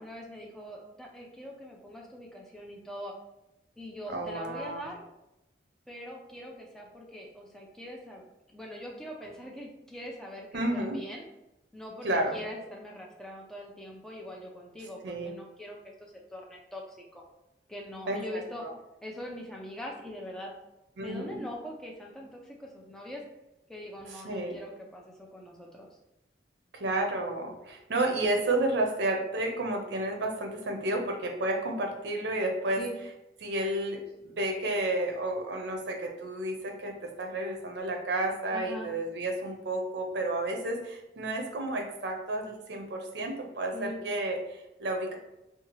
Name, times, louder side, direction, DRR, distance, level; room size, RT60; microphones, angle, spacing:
voice 1, 0.0-3.1 3.8-5.0 5.9-8.2 8.5-11.3 11.7-17.2 17.7-18.6 19.0-20.5 21.0-23.2 23.7-25.9 32.8-32.9 38.5-38.9 43.7-44.0, left 1 dB, 5° left, -2 dB, 0.3 m, -42 dB
voice 2, 4.1-4.9 10.5-11.0 12.0-12.4 15.0-15.3 18.1-18.2 18.6-18.7 21.0-21.4 24.0-24.6 26.7-32.8 33.4-45.2, right 1 dB, 75° right, 3 dB, 0.5 m, -31 dB
2.7 x 2.3 x 2.9 m, 0.90 s
head